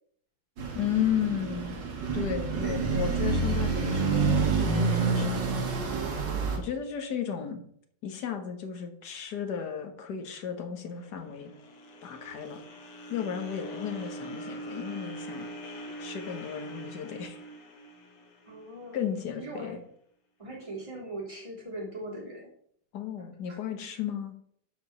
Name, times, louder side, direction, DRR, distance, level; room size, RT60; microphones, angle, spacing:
sound 1, 0.6-6.6, right 4 dB, 85° right, 2.2 m, -28 dB
voice 1, 0.7-1.8 2.1-5.5 6.6-7.6 8.0-11.5 12.0-12.6 13.1-15.5 16.0-17.4 18.9-19.8 22.9-24.3, left 8 dB, 70° left, 5 dB, 1.7 m, -34 dB
sound 2, 10.9-19.1, right 1 dB, 85° left, 1.9 m, -42 dB
voice 2, 18.5-19.0 19.4-19.8 20.4-22.5 23.2-23.3, right 1 dB, 20° right, -4 dB, 3.2 m, -40 dB
6.9 x 4.7 x 6.9 m, 0.65 s
omnidirectional pair, 1.9 m